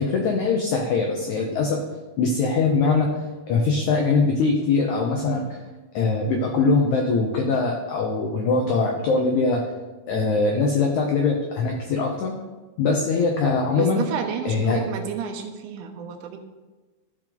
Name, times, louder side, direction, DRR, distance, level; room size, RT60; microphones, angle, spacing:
voice 1, 0.0-1.8 2.2-3.1 3.5-5.5 5.9-9.6 10.1-12.3 12.8-14.0 14.5-14.8, left 4 dB, 90° left, 1 dB, 1.6 m, -22 dB
voice 2, 13.8-16.4, right 7 dB, 75° right, 4 dB, 1.9 m, -30 dB
13.5 x 4.7 x 3.9 m, 1.2 s
omnidirectional pair, 4.5 m